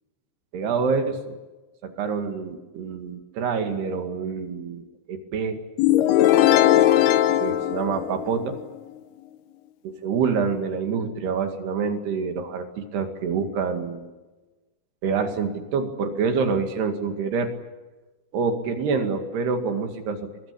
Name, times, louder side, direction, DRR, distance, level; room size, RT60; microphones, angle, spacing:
voice 1, 0.5-1.4 1.8-5.6 7.4-8.6 9.8-14.1 15.0-17.5 18.3-20.3, right 5 dB, 65° right, 6 dB, 4.0 m, -26 dB
sound 1, 5.8-8.6, left 12 dB, 70° left, 2.6 m, -19 dB
23.0 x 22.0 x 9.9 m, 1.2 s
omnidirectional pair, 5.4 m